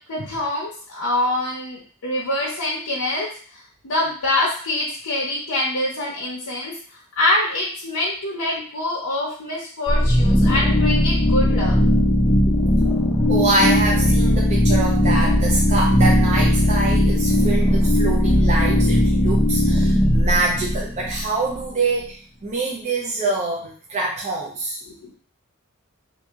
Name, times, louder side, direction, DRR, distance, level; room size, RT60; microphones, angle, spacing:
voice 1, 0.1-3.3 3.5-6.7 7.2-12.2 12.6-12.7 24.9-25.1, left 1 dB, 85° left, -5 dB, 0.8 m, -25 dB
sound 1, 9.9-21.6, left 1 dB, 15° left, 0.5 m, -18 dB
voice 2, 13.3-24.8, right 2 dB, 30° right, -3 dB, 0.5 m, -25 dB
2.8 x 2.6 x 3.5 m, 0.43 s
head